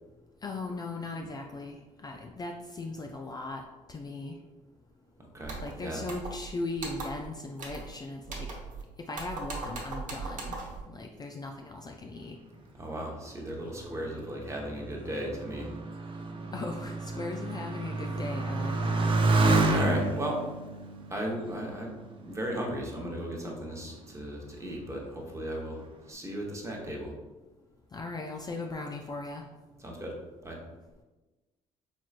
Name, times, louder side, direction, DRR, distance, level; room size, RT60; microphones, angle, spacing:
voice 1, 0.4-3.6 3.9-4.4 5.6-8.5 9.1-10.6 10.9-12.4 16.5-19.1 27.9-29.4, left 2 dB, 25° left, 2 dB, 0.4 m, -38 dB
voice 2, 5.3-6.0 12.8-15.7 19.6-20.4 21.1-22.0 22.2-27.1 29.8-30.2 30.4-30.6, right 1 dB, 20° right, -1 dB, 1.0 m, -36 dB
sound 1, 5.4-5.7 6.1-6.5 6.8-7.3 7.6-7.9 8.2-8.8 9.1-10.8, right 3 dB, 60° right, 1.0 m, -39 dB
Motorcycle, 13.6-22.5 23.3-23.9, right 2 dB, 35° right, 0.5 m, -30 dB
4.4 x 3.0 x 2.4 m, 1.2 s
supercardioid pair, 70°, 15 cm